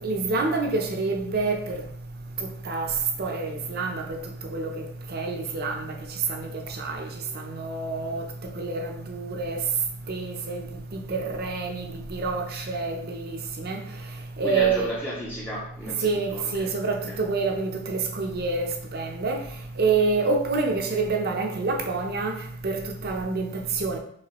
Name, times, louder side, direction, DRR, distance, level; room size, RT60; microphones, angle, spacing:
voice 1, 0.0-1.8 2.7-2.9 3.2-4.0 4.5-4.7 5.1-5.9 6.3-7.1 7.3-8.2 8.5-9.6 10.1-10.6 10.9-13.8 14.4-14.9 16.0-19.4 19.8-22.3 22.6-24.0, right 4 dB, 45° right, 0.6 m, -27 dB
voice 2, 14.4-16.7 17.1-17.2, equal, 10° left, 0.6 m, -34 dB
4.7 x 3.3 x 3.0 m
head